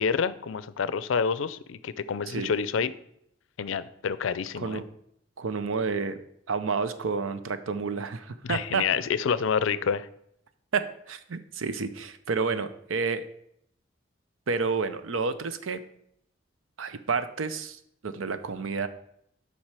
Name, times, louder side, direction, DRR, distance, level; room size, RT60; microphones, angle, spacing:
voice 1, 0.0-2.9 3.6-4.8 8.4-10.1, left 6 dB, 80° left, 16 dB, 0.4 m, -28 dB
voice 2, 5.4-6.2 6.5-8.8 10.7-13.3 14.5-15.8 16.8-18.9, right 4 dB, 85° right, 11 dB, 0.6 m, -30 dB
7.3 x 5.5 x 4.8 m, 0.73 s
head